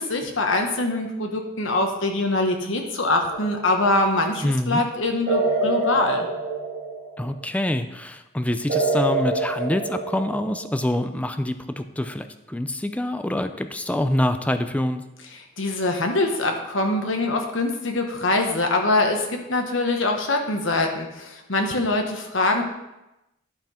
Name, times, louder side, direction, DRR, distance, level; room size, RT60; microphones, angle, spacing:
voice 1, 0.0-6.3 15.6-22.6, left 2 dB, 75° left, 3 dB, 1.3 m, -23 dB
sound 1, 3.3-3.9 5.3-7.3 8.7-10.8, right 3 dB, 50° right, 2.0 m, -26 dB
voice 2, 4.4-4.8 7.2-15.0, left 1 dB, 5° left, 8 dB, 0.5 m, -26 dB
11.0 x 5.9 x 4.4 m, 0.94 s
head